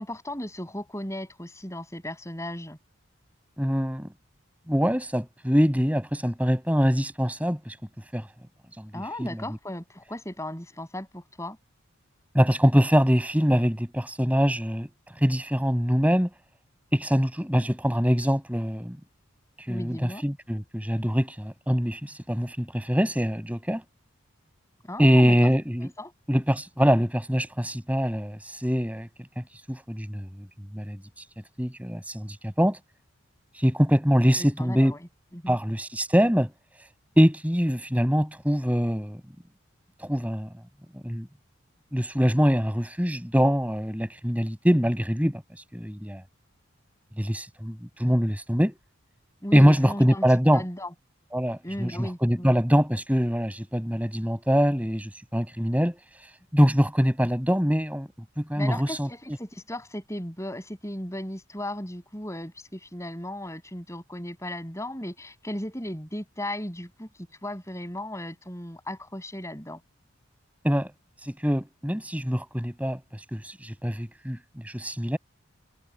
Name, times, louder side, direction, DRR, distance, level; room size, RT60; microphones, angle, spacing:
voice 1, 0.0-2.8 8.9-11.6 19.7-20.2 24.8-25.5 25.8-26.1 34.4-35.0 35.3-35.6 49.4-50.2 50.5-50.9 51.6-52.5 58.5-67.1 67.4-69.8, left 1 dB, 15° left, 7.6 m, -36 dB
voice 2, 3.6-4.1 4.7-7.8 8.1-8.3 8.8-9.4 12.3-14.9 15.2-16.3 16.9-19.0 19.7-23.8 25.0-25.9 26.3-29.1 29.4-30.5 30.7-31.0 31.6-32.8 33.5-34.9 35.5-36.5 37.2-39.2 40.0-40.5 40.9-41.3 41.9-45.4 45.7-46.2 47.2-48.7 49.5-50.6 51.3-56.0 56.5-58.1 58.4-59.1 70.6-70.9 71.2-73.0 73.3-75.2, equal, 5° right, 6.2 m, -24 dB
head